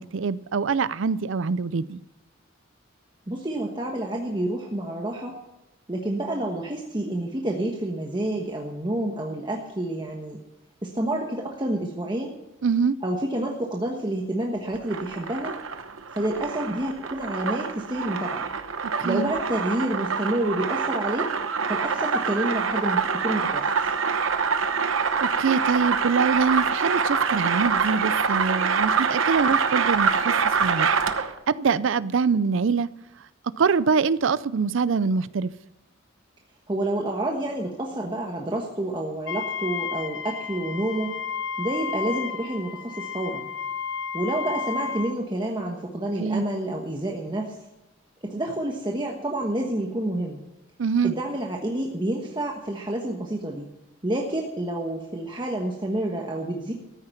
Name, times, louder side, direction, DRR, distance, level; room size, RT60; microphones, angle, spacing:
voice 1, 0.0-2.0 12.6-12.9 19.0-19.3 25.2-30.3 30.6-30.9 31.5-32.9 33.6-35.5 46.2-46.4 50.8-51.1, right 5 dB, 70° right, 0.5 m, -24 dB
voice 2, 3.3-5.4 5.9-10.4 10.8-12.4 13.0-15.5 16.1-18.5 19.0-21.3 21.7-23.7 36.7-41.2 41.6-43.5 44.1-47.6 48.2-50.4 51.0-53.7 54.0-56.7, right 1 dB, 25° right, 1.2 m, -28 dB
sound 1, 14.7-31.4, right 5 dB, 85° right, 1.0 m, -25 dB
Wind instrument woodwind instrument, 39.3-45.2, left 7 dB, 65° left, 0.9 m, -32 dB
14.0 x 9.6 x 5.8 m
head